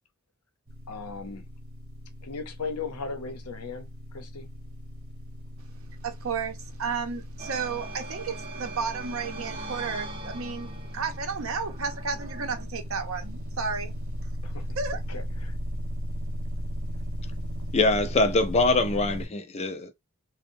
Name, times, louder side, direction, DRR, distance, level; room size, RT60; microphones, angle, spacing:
sound 1, 0.7-19.3, equal, 45° right, 0.9 m, -37 dB
voice 1, 0.9-1.5 2.2-4.5 14.4-14.6 15.1-15.6, left 4 dB, 90° left, 0.7 m, -37 dB
voice 2, 6.0-13.9 14.8-15.0, right 5 dB, 65° right, 0.6 m, -32 dB
sound 2, 7.4-12.6, right 2 dB, 25° right, 0.7 m, -41 dB
voice 3, 17.7-19.9, left 2 dB, 30° left, 0.4 m, -23 dB
2.7 x 2.1 x 2.6 m
head